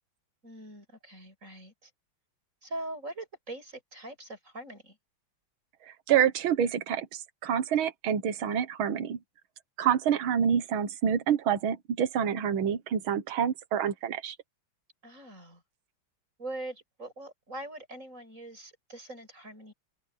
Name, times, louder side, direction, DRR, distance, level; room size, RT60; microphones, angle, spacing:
voice 1, 0.4-1.9 2.6-5.0 15.0-15.6 16.4-19.7, right 1 dB, 35° right, 8.6 m, -42 dB
voice 2, 6.1-9.2 9.8-14.4, right 8 dB, 80° right, 2.1 m, -27 dB
open air
omnidirectional pair, 2.2 m